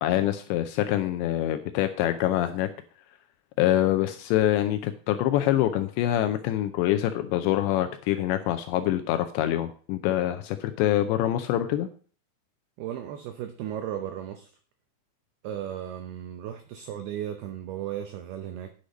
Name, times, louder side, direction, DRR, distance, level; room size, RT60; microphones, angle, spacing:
voice 1, 0.0-2.7 3.6-11.9, left 13 dB, 80° left, 2.6 m, -25 dB
voice 2, 12.8-14.5 15.4-18.7, right 10 dB, 85° right, 2.2 m, -35 dB
10.0 x 6.4 x 5.2 m
omnidirectional pair, 5.6 m